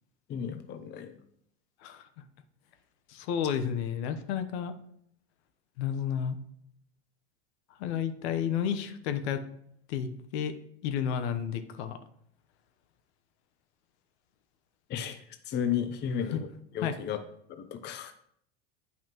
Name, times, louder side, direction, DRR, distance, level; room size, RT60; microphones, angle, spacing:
voice 1, 0.3-1.2 14.9-16.5 16.7-17.2 17.5-18.1, left 8 dB, 30° left, 8 dB, 0.7 m, -33 dB
voice 2, 3.1-4.7 5.8-6.4 7.8-9.4 9.9-10.5 10.8-12.0 16.3-16.4 16.8-17.0, left 8 dB, 65° left, 8 dB, 1.0 m, -31 dB
9.0 x 5.7 x 3.0 m, 0.68 s
supercardioid pair, 115°, 35 cm